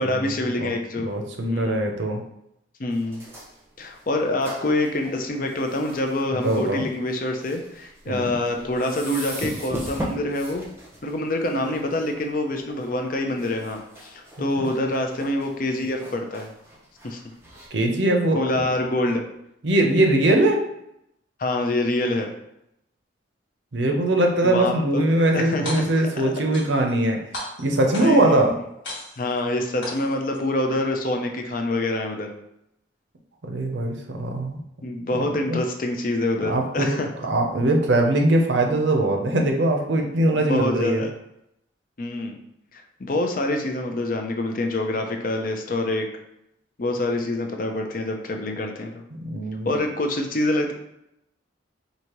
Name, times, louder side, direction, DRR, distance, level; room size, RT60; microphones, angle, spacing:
voice 1, 0.0-1.1 1.5-1.8 2.8-3.2 3.8-10.6 11.0-16.5 17.0-17.2 18.3-19.2 21.4-22.3 24.4-25.1 25.3-25.9 27.9-28.5 29.2-32.3 34.8-37.1 40.3-41.1 42.0-42.4 42.7-46.1 46.8-49.0 49.7-50.7, left 1 dB, 45° left, 3 dB, 0.5 m, -26 dB
voice 2, 1.0-2.2 6.4-6.8 8.1-8.3 14.6-14.7 17.7-18.7 19.6-20.6 23.7-27.2 27.6-28.5 33.4-34.6 35.5-35.6 36.4-41.0 49.1-49.7, right 1 dB, 70° right, 3 dB, 0.6 m, -21 dB
sound 1, 2.9-17.7, right 1 dB, 15° right, 0.7 m, -40 dB
sound 2, 25.5-26.1 26.5-27.1 27.3-28.3 28.8-29.4 29.8-30.4, left 1 dB, 80° left, 1.5 m, -35 dB
4.8 x 2.7 x 2.9 m, 0.81 s
head